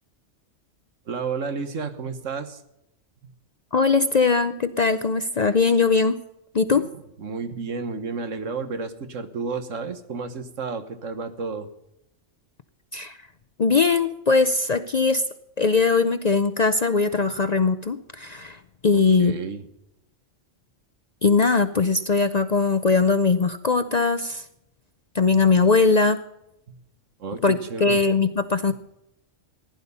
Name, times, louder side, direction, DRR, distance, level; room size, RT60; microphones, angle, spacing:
voice 1, 1.1-2.6 3.2-3.3 6.7-6.8 7.2-11.7 18.9-19.7 26.7-26.8 27.2-28.0, right 4 dB, 80° right, 9 dB, 1.6 m, -32 dB
voice 2, 3.7-6.2 6.5-6.8 12.9-13.2 13.6-15.2 15.6-19.3 21.2-24.4 25.1-26.2 27.4-28.7, left 4 dB, 45° left, 11 dB, 0.5 m, -20 dB
15.5 x 10.5 x 5.4 m, 0.84 s
omnidirectional pair, 1.3 m